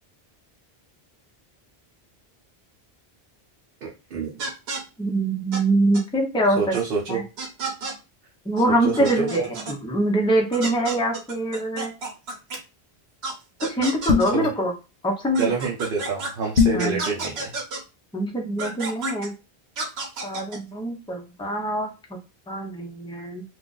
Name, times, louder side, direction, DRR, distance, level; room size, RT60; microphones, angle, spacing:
voice 1, 3.8-4.3 6.6-7.2 8.7-9.5 14.3-14.5 15.4-17.5, right 5 dB, 65° right, -2 dB, 0.8 m, -27 dB
sound 1, 4.4-4.8 5.5-5.6 5.9-6.0 6.7-6.8 7.4-7.9 8.6-8.7 8.9-9.8 10.5-12.6 13.2-13.3 13.6-14.3 15.3-16.3 16.8-17.8 18.6-19.3 19.8-20.6, right 3 dB, 80° right, 1.1 m, -31 dB
voice 2, 5.0-6.7 7.1-7.2 8.5-9.4 9.7-11.9 13.6-14.7 15.0-15.5 16.7-17.0 18.1-19.3 20.2-21.9 22.5-23.4, right 1 dB, 5° left, 2 dB, 0.5 m, -24 dB
sound 2, 14.1-14.5 16.6-16.9, left 5 dB, 60° left, 0.9 m, -19 dB
2.5 x 2.4 x 3.8 m, 0.29 s
omnidirectional pair, 1.0 m